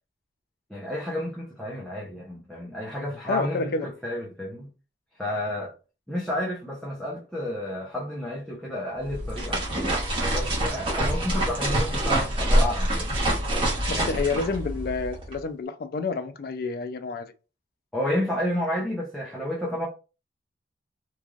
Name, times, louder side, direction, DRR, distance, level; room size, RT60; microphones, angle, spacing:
voice 1, 0.7-4.7 5.2-5.7 6.1-9.6 10.3-13.2 13.9-14.2 17.9-19.9, left 1 dB, ahead, 0.6 m, -31 dB
voice 2, 3.2-3.9 13.9-17.3, left 4 dB, 50° left, 0.3 m, -29 dB
sound 1, 9.0-15.4, right 1 dB, 25° right, 0.9 m, -26 dB
3.1 x 2.5 x 2.3 m
head